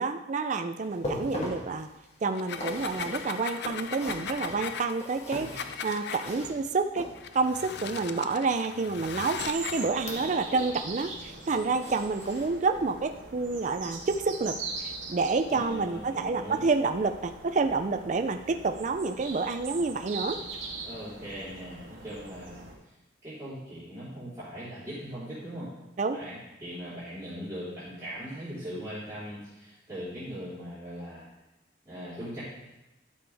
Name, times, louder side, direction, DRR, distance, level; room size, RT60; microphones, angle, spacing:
voice 1, 0.0-1.9 2.2-7.1 7.3-14.5 14.8-20.4 26.0-26.2, right 4 dB, 40° right, 7 dB, 0.4 m, -29 dB
sound 1, 0.8-7.6 9.0-10.8 11.1-13.0 13.5-13.6 14.1-14.2, left 1 dB, 35° left, 1.7 m, -41 dB
sound 2, 2.3-6.3 7.1-9.9, left 6 dB, 60° left, 0.5 m, -38 dB
sound 3, 9.4-22.7, right 3 dB, 80° right, 1.7 m, -42 dB
voice 2, 15.5-16.6 20.8-22.9 23.2-25.7 26.1-31.3 31.9-32.4, equal, 15° right, -15 dB, 3.8 m, -40 dB
12.5 x 7.0 x 3.4 m, 0.98 s
head